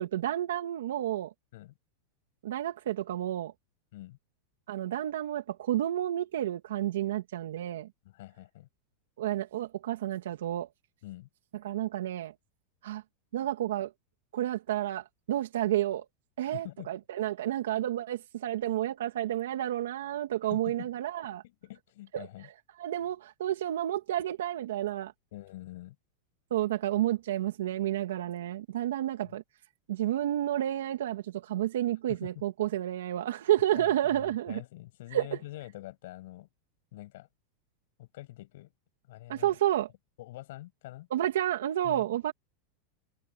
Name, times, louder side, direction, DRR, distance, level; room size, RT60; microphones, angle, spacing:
voice 1, 0.0-1.3 2.4-3.5 4.7-7.9 9.2-10.7 11.6-12.3 12.8-13.0 13.3-13.9 14.3-16.1 16.4-21.4 22.1-22.3 22.8-25.1 26.5-29.4 29.9-34.6 35.1-35.3 39.3-39.9 41.1-42.3, right 12 dB, 90° right, 2.3 m, -30 dB
voice 2, 8.0-8.7 11.0-11.3 13.4-13.5 16.4-16.9 20.4-20.9 21.2-22.5 25.3-26.0 29.2-29.3 32.1-32.4 33.7-36.5 36.9-37.3 38.0-38.7 39.1-39.6 40.2-41.1 41.8-42.2, left 17 dB, 70° left, 7.5 m, -45 dB
supercardioid pair, 150°, 0 cm